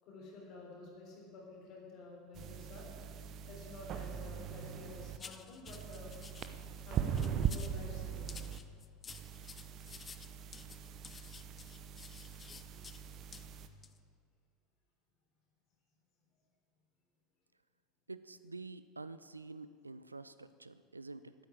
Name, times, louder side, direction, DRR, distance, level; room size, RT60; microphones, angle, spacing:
voice 1, 0.0-2.9 3.5-6.1 6.9-8.3, left 3 dB, 45° left, -2 dB, 3.7 m, -50 dB
sound 1, 2.3-5.2 5.7-8.6 9.1-13.7, right 8 dB, 40° right, 0.7 m, -41 dB
sound 2, 5.2-6.5 7.0-7.8 8.3-13.0 13.3-13.5 13.8-14.0, left 6 dB, 25° left, 0.5 m, -52 dB
voice 2, 18.1-21.3, right 3 dB, 85° right, 14 dB, 0.3 m, -48 dB
9.4 x 8.7 x 8.6 m, 2.1 s
figure-of-eight pair, 75°, 0 cm